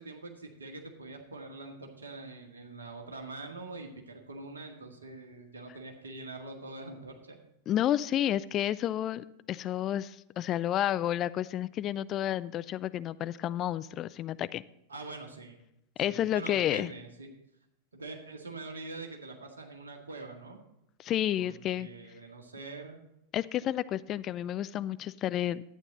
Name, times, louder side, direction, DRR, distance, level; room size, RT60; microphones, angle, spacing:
voice 1, 0.0-7.4 14.9-15.6 16.0-17.3 17.9-20.6 21.4-23.0, right 3 dB, 75° right, 2 dB, 1.8 m, -44 dB
voice 2, 7.7-14.6 16.0-16.9 21.0-21.9 23.3-25.6, left 12 dB, 30° left, 16 dB, 0.3 m, -30 dB
11.5 x 9.0 x 4.0 m, 0.84 s
figure-of-eight pair, 90°, 0 cm